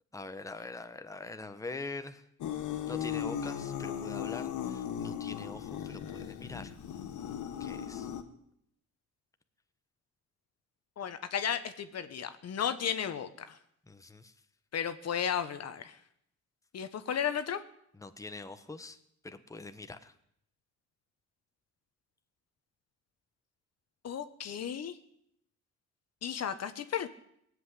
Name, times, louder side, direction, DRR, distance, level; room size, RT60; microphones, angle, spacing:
voice 1, 0.1-2.2 2.9-6.8 7.6-8.1 13.9-14.3 18.0-19.0 19.2-20.1, left 3 dB, 10° left, 8 dB, 1.2 m, -43 dB
sound 1, 2.4-8.2, left 9 dB, 80° left, 1.6 m, -37 dB
voice 2, 11.0-13.6 14.7-16.0 16.7-17.6 24.0-25.0 26.2-27.1, left 8 dB, 55° left, 10 dB, 1.2 m, -34 dB
18.0 x 8.1 x 9.8 m, 0.73 s
cardioid pair, 90°, 30 cm